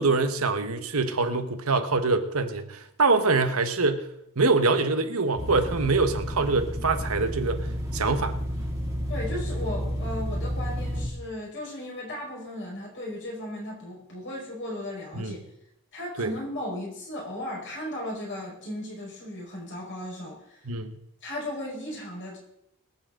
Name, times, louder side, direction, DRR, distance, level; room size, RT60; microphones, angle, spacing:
voice 1, 0.0-4.1 4.4-7.7 7.9-8.4 15.1-15.4 16.2-16.3 20.6-21.0, right 3 dB, 75° right, 8 dB, 1.2 m, -24 dB
sound 1, 5.4-11.1, equal, 15° right, 2.4 m, -31 dB
voice 2, 9.1-15.4 15.9-20.6 21.2-22.4, left 1 dB, 55° left, -3 dB, 5.0 m, -36 dB
23.0 x 7.7 x 3.8 m, 0.79 s
head